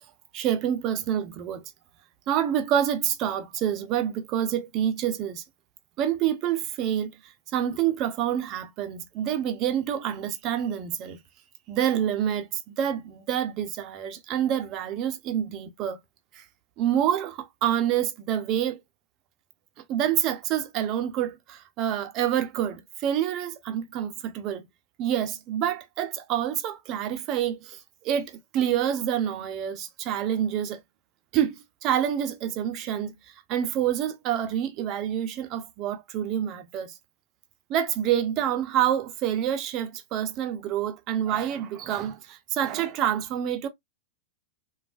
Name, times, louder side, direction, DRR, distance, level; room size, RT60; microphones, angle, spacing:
voice 1, 0.3-1.6 2.3-5.4 6.0-7.1 7.5-11.2 11.7-16.0 16.8-18.8 19.9-24.7 25.0-27.8 28.0-30.8 31.3-31.5 31.8-33.1 33.5-36.9 37.7-43.7, right 10 dB, 40° right, 0.6 m, -27 dB
3.2 x 2.3 x 2.4 m
hypercardioid pair, 100°, 0 cm